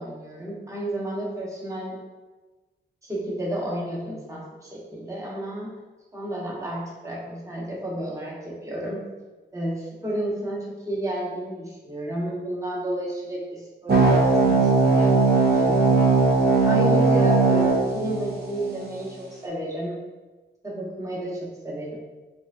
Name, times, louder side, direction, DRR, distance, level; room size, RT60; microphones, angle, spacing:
voice 1, 0.0-2.0 3.0-5.7 6.1-9.1 9.5-15.2 15.5-16.0 16.7-19.9 20.6-22.0, right 1 dB, 15° right, -4 dB, 1.0 m, -31 dB
sound 1, 13.9-18.9, right 3 dB, 55° right, 0.8 m, -19 dB
4.6 x 2.5 x 2.5 m, 1.2 s
cardioid pair, 85°, 19 cm